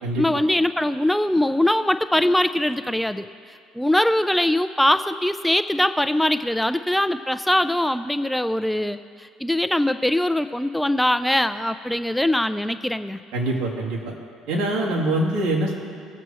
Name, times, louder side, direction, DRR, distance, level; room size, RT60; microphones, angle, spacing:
voice 1, 0.2-13.2, left 1 dB, 5° left, 11 dB, 0.3 m, -22 dB
voice 2, 13.3-14.0 14.5-15.8, right 1 dB, 75° right, -3 dB, 2.7 m, -24 dB
21.0 x 7.9 x 3.1 m, 2.3 s
cardioid pair, 105°, 0 cm